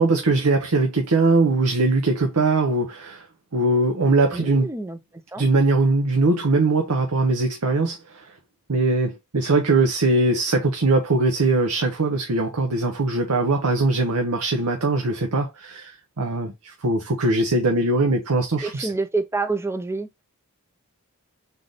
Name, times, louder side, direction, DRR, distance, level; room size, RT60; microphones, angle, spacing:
voice 1, 0.0-3.3 3.5-4.7 5.4-8.3 8.7-18.9, right 2 dB, 85° right, 0.8 m, -21 dB
voice 2, 4.3-5.0 5.3-5.5 18.6-20.2, right 3 dB, 10° right, 0.4 m, -27 dB
3.9 x 3.4 x 3.8 m
head